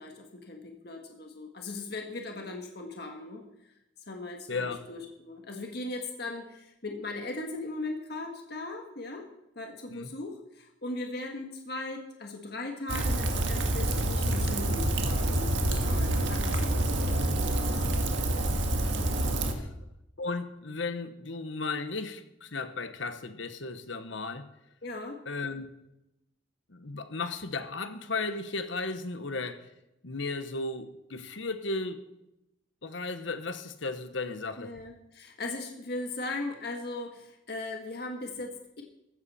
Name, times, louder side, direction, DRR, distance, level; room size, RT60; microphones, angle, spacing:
voice 1, 0.0-3.4 4.1-9.2 9.5-16.9 17.2-18.2 19.5-19.7 24.8-25.2 34.6-38.8, left 2 dB, 55° left, 2 dB, 1.6 m, -38 dB
Rain, 12.9-19.5, right 1 dB, 70° right, 1.7 m, -27 dB
voice 2, 20.2-24.5 25.3-25.7 26.7-29.7 30.0-32.0 32.8-34.7, left 3 dB, 70° left, 10 dB, 1.2 m, -35 dB
15.0 x 14.0 x 4.3 m, 0.87 s
head